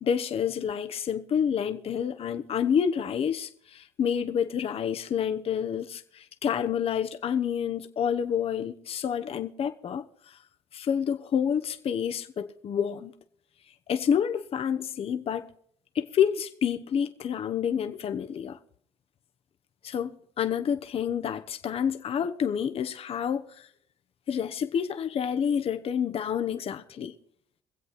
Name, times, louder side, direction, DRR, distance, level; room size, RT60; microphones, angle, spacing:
voice 1, 0.0-10.4 10.7-13.1 13.9-15.5 15.9-18.6 19.8-23.7 24.3-27.1, left 8 dB, 50° left, 1.0 m, -28 dB
23.5 x 8.0 x 4.1 m
supercardioid pair, 65°, 12 cm